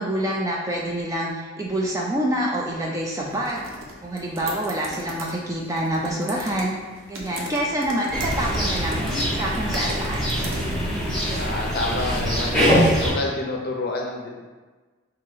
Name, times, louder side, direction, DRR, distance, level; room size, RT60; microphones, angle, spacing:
voice 1, 0.0-3.7 4.0-6.7 7.1-9.0 9.3-10.4, right 1 dB, 15° right, -2 dB, 0.3 m, -26 dB
sound 1, 3.3-11.1, right 1 dB, 65° right, 0.6 m, -38 dB
sound 2, 8.1-13.1, equal, 5° left, 1.2 m, -23 dB
voice 2, 11.3-12.7 13.0-14.4, left 2 dB, 45° left, -1 dB, 0.5 m, -28 dB
2.7 x 2.7 x 3.9 m, 1.3 s
head